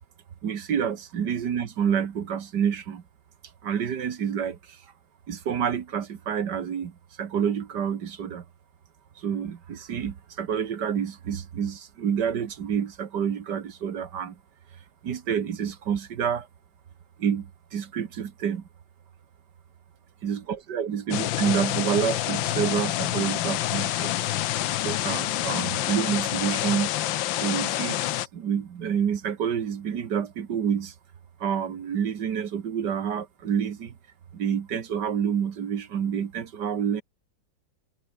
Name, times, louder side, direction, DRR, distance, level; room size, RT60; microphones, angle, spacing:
voice 1, 0.4-3.0 3.6-4.8 5.3-8.4 9.2-14.4 15.0-16.5 17.2-18.6 20.2-24.1 24.8-26.9 27.3-30.9 31.4-33.9 34.3-37.0, right 8 dB, 65° right, 2.0 m, -28 dB
sound 1, 21.1-28.3, left 14 dB, 90° left, 1.5 m, -27 dB
omnidirectional pair, 2.0 m